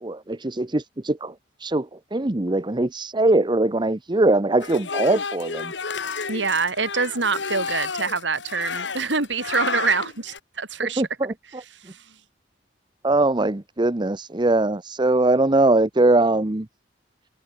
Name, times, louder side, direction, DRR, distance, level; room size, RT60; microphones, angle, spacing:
voice 1, 0.0-1.3 1.6-5.7 11.0-11.6 13.0-16.7, right 2 dB, 25° right, 0.9 m, -21 dB
sound 1, 4.6-10.4, left 5 dB, 75° left, 1.9 m, -31 dB
voice 2, 6.3-11.0 11.9-12.0, right 4 dB, 85° right, 3.7 m, -25 dB
head